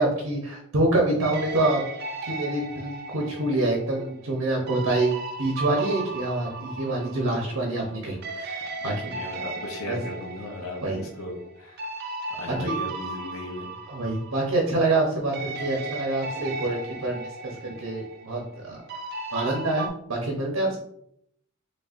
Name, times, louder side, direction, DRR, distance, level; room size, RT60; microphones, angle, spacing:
voice 1, 0.0-1.8 2.3-5.1 5.4-9.2 9.9-10.0 10.8-11.0 12.6-12.7 13.9-18.8 19.3-20.8, right 2 dB, 85° right, 0 dB, 0.8 m, -26 dB
sound 1, 1.2-8.0 8.2-15.1 15.3-19.9, right 2 dB, 45° right, 0.4 m, -36 dB
voice 2, 8.8-10.8 11.2-11.9 12.3-13.7, left 2 dB, 75° left, 0 dB, 0.7 m, -36 dB
4.1 x 3.2 x 2.4 m, 0.73 s
head